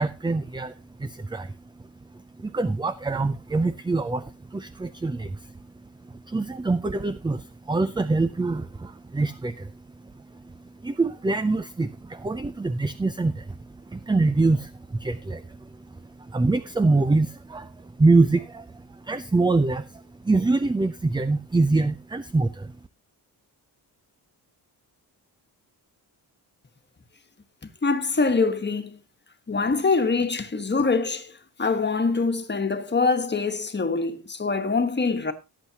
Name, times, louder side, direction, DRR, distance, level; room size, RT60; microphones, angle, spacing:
voice 1, 0.0-22.8, right 3 dB, 10° right, 0.5 m, -25 dB
voice 2, 27.8-29.0 29.5-31.3 31.6-35.3, left 4 dB, 25° left, 1.4 m, -24 dB
17.5 x 8.1 x 2.9 m
cardioid pair, 110°, 41 cm